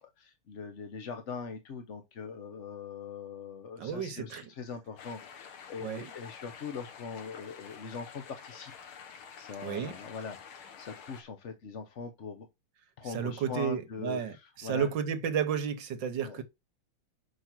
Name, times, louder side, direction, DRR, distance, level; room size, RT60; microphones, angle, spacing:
voice 1, 0.0-8.7 9.4-12.5 13.0-14.9 16.2-16.4, left 5 dB, 50° left, 0.9 m, -42 dB
voice 2, 3.8-4.5 5.8-6.1 9.6-9.9 13.0-16.4, right 7 dB, 65° right, 1.6 m, -32 dB
sound 1, 5.0-11.2, left 7 dB, 85° left, 2.1 m, -49 dB
5.9 x 5.5 x 5.9 m
omnidirectional pair, 2.3 m